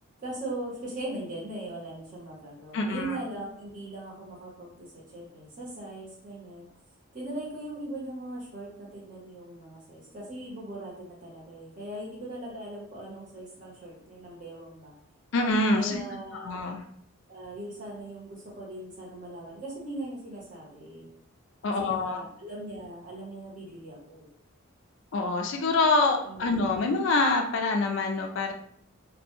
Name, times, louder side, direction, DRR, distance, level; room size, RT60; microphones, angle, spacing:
voice 1, 0.2-6.7 7.1-14.9 15.8-16.5 17.3-21.1 21.8-24.2 26.2-26.7, right 1 dB, 35° right, -4 dB, 0.7 m, -40 dB
voice 2, 2.7-3.1 15.3-16.0 16.4-16.8 21.6-22.2 25.1-28.5, left 3 dB, 60° left, 3 dB, 0.3 m, -25 dB
2.1 x 2.1 x 2.9 m, 0.67 s
head